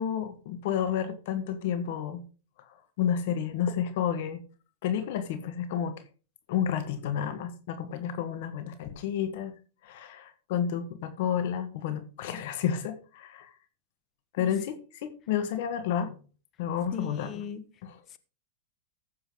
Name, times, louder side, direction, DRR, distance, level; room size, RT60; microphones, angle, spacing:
voice 1, 0.0-2.2 2.6-4.4 4.8-6.0 6.5-9.5 9.8-13.5 14.3-16.2 16.6-17.4 17.8-18.0, left 8 dB, 65° left, 9 dB, 1.5 m, -31 dB
voice 2, 16.9-17.6, left 8 dB, 30° left, 13 dB, 1.2 m, -37 dB
15.0 x 7.0 x 3.8 m, 0.36 s
supercardioid pair, 140°, 0 cm